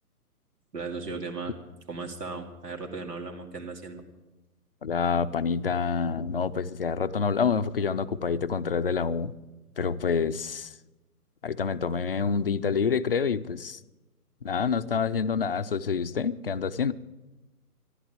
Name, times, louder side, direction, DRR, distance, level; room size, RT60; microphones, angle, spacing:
voice 1, 0.7-1.6 1.9-4.0, right 4 dB, 85° right, 1 dB, 2.7 m, -36 dB
voice 2, 4.8-9.3 9.8-10.7 11.4-13.8 14.4-16.9, left 6 dB, 40° left, 13 dB, 0.5 m, -27 dB
13.5 x 11.5 x 8.7 m, 1.1 s
hypercardioid pair, 150°, 47 cm